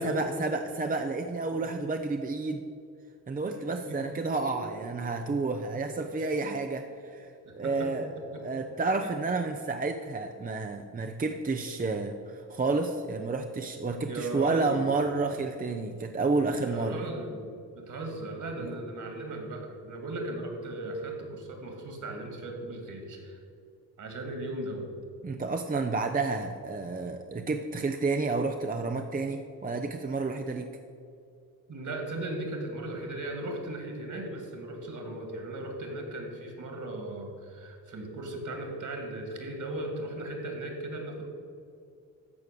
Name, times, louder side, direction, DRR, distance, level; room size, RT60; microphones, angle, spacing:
voice 1, 0.0-2.6 3.3-8.1 8.4-17.0 18.6-18.7 25.2-30.7, right 3 dB, 25° right, 5 dB, 0.7 m, -30 dB
voice 2, 3.5-4.0 4.5-4.7 7.4-8.4 9.0-9.1 14.1-14.8 16.7-23.4 24.0-24.9 31.7-41.2, right 1 dB, 55° right, 3 dB, 2.6 m, -37 dB
14.0 x 4.7 x 6.8 m, 2.4 s
supercardioid pair, 65°, 37 cm